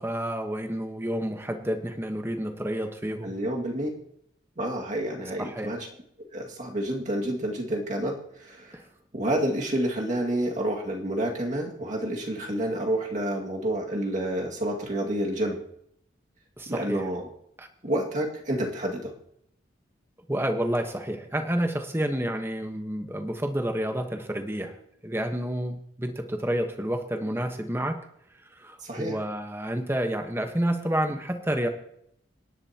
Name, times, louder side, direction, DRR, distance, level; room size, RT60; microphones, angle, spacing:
voice 1, 0.0-3.3 5.4-5.7 8.7-8.8 16.6-17.0 17.6-17.7 20.3-24.8 25.0-28.0 28.6-31.7, right 1 dB, 15° right, 6 dB, 1.2 m, -29 dB
voice 2, 3.2-3.9 4.6-5.9 6.3-8.8 9.1-15.6 16.7-17.3 17.8-19.1 28.8-29.2, right 1 dB, 40° right, 0 dB, 2.1 m, -29 dB
27.0 x 11.0 x 2.9 m, 0.72 s
head